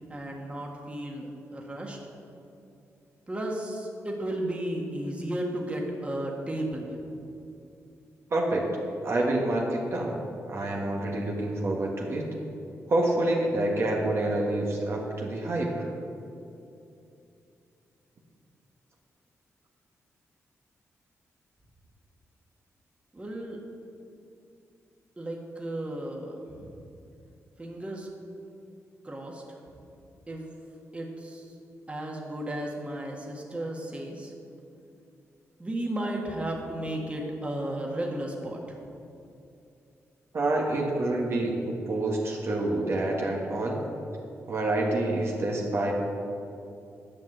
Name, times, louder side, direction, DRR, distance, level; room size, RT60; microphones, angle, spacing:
voice 1, 0.1-2.0 3.3-6.9 23.1-23.6 25.2-26.7 27.6-28.1 29.0-29.4 30.3-30.4 30.9-31.4 31.9-34.3 35.6-38.8, right 1 dB, 20° right, -1 dB, 1.7 m, -34 dB
voice 2, 8.3-8.7 9.0-10.2 10.5-12.3 12.9-15.9 40.3-43.8 44.5-45.9, right 2 dB, 50° right, -1 dB, 1.5 m, -27 dB
10.5 x 5.7 x 7.9 m, 2.7 s
cardioid pair, 85°, 5 cm